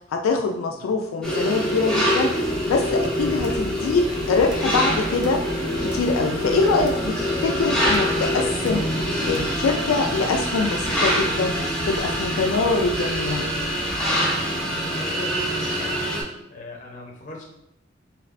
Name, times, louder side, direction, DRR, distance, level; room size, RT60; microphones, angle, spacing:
voice 1, 0.1-2.3 2.7-5.4 5.8-8.9 9.3-11.6 11.9-13.5, left 4 dB, 85° left, 3 dB, 0.3 m, -24 dB
sound 1, 1.2-16.2, equal, 5° left, 0.7 m, -25 dB
sound 2, 2.4-14.1, equal, 25° right, 1.5 m, -40 dB
sound 3, 3.4-3.7 4.3-4.8 5.2-6.2 6.8-7.2 7.8-8.2 8.6-8.9 9.2-9.6 10.8-11.2 11.9-12.2, right 1 dB, 60° right, 0.5 m, -40 dB
voice 2, 14.7-16.1 16.5-17.4, left 2 dB, 40° left, -2 dB, 0.7 m, -40 dB
3.2 x 2.9 x 2.5 m, 0.80 s
head